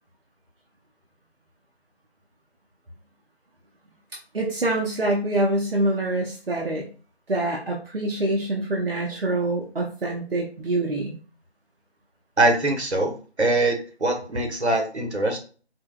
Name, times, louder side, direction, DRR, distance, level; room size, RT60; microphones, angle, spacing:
voice 1, 4.3-6.9 7.3-11.2, right 1 dB, 60° right, -1 dB, 0.7 m, -25 dB
voice 2, 12.4-13.1 13.4-15.4, right 2 dB, 80° right, 3 dB, 1.1 m, -22 dB
4.4 x 2.1 x 2.3 m, 0.38 s
figure-of-eight pair, 165°, 33 cm